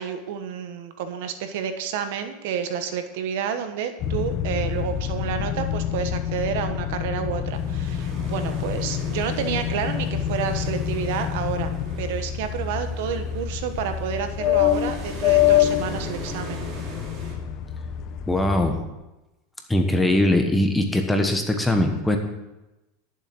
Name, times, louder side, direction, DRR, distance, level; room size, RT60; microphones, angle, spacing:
voice 1, 0.0-11.7 12.0-16.7, right 8 dB, 70° right, 8 dB, 1.2 m, -30 dB
sound 1, 4.0-18.8, left 11 dB, 40° left, 0.8 m, -26 dB
sound 2, 7.5-17.3, right 4 dB, 35° right, 2.8 m, -41 dB
voice 2, 18.3-18.8 19.7-22.2, left 1 dB, 5° left, 4 dB, 1.2 m, -21 dB
11.5 x 7.3 x 6.2 m, 0.99 s
supercardioid pair, 150°, 0 cm